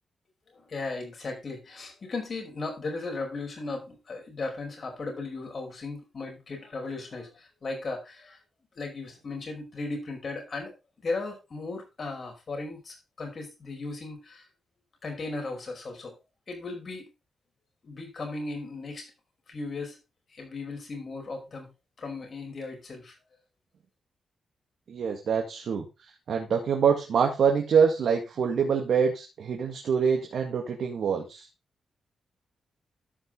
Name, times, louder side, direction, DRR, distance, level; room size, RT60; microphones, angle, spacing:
voice 1, 0.5-8.4 8.7-14.4 15.0-16.1 16.5-17.1 17.8-19.1 19.5-20.0 20.3-21.7 22.0-23.1, left 3 dB, 50° left, 2 dB, 5.2 m, -36 dB
voice 2, 24.9-25.9 26.3-31.5, right 6 dB, 70° right, 2 dB, 1.9 m, -25 dB
13.5 x 5.8 x 3.8 m, 0.26 s
cardioid pair, 70°, 0 cm